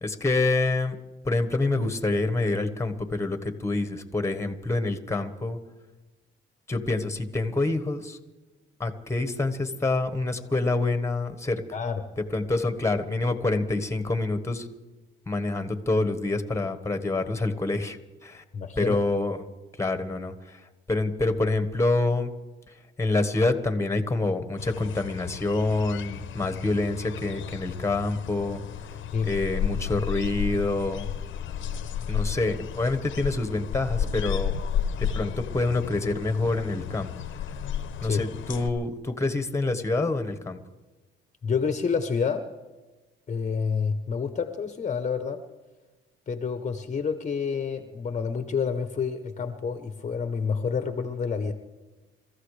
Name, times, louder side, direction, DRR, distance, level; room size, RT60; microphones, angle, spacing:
voice 1, 0.0-0.9 1.2-5.6 6.7-8.2 8.8-11.6 12.3-14.7 15.3-18.4 18.8-19.4 19.8-20.6 20.9-22.3 23.0-28.6 29.2-31.1 32.1-34.6 35.0-37.5 38.0-40.6, left 2 dB, 15° left, 9 dB, 1.4 m, -27 dB
voice 2, 11.7-12.0 18.5-19.0 29.1-29.4 38.0-38.3 41.4-42.5 43.3-45.4 46.3-51.5, left 5 dB, 35° left, 7 dB, 1.0 m, -28 dB
sound 1, 24.6-38.7, left 8 dB, 75° left, 0.9 m, -33 dB
28.0 x 14.0 x 3.3 m, 1.2 s
cardioid pair, 90°, 20 cm